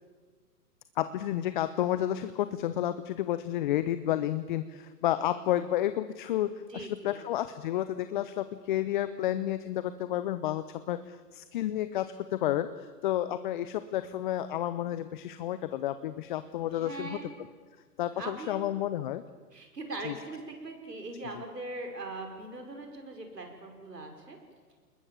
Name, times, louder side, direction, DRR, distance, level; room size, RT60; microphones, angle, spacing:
voice 1, 1.0-17.2 18.0-19.2 20.0-20.1, left 12 dB, 30° left, 13 dB, 0.8 m, -31 dB
voice 2, 6.7-7.2 16.7-17.3 18.1-18.7 19.5-24.4, right 2 dB, 85° right, 3 dB, 5.9 m, -41 dB
27.5 x 21.0 x 7.3 m, 1.5 s
hypercardioid pair, 130°, 47 cm